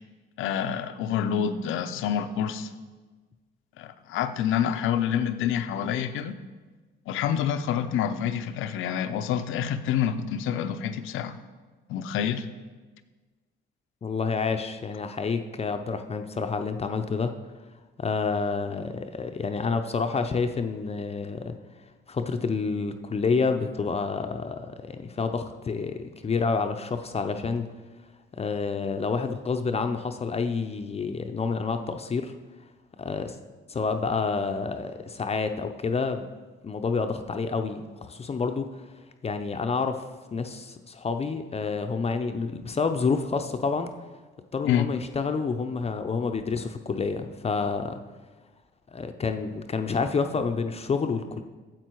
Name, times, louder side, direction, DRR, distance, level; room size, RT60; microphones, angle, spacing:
voice 1, 0.4-2.7 3.8-6.4 7.1-11.3 11.9-12.5 44.6-44.9, left 9 dB, 85° left, 10 dB, 0.6 m, -27 dB
voice 2, 14.0-17.3 18.0-21.5 22.1-27.7 28.3-32.3 33.0-33.4 33.7-36.3 36.6-38.8 39.2-40.0 40.3-43.9 44.5-48.0 48.9-51.4, left 4 dB, 30° left, 7 dB, 0.5 m, -28 dB
9.1 x 7.5 x 4.5 m, 1.3 s
cardioid pair, 90°, 20 cm